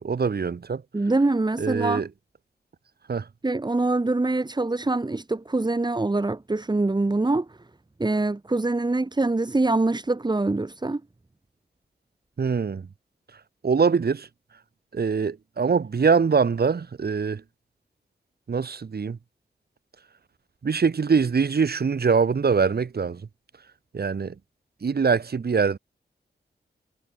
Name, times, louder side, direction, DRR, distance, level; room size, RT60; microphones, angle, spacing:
voice 1, 0.0-0.8 1.6-2.1 3.1-3.3 12.4-12.9 13.6-14.3 14.9-17.4 18.5-19.2 20.6-23.2 23.9-24.3 24.8-25.8, right 5 dB, 60° right, 7.6 m, -23 dB
voice 2, 0.9-2.0 3.4-7.5 8.0-11.0, right 2 dB, 25° right, 5.4 m, -24 dB
wide cardioid pair, 130°, 18 cm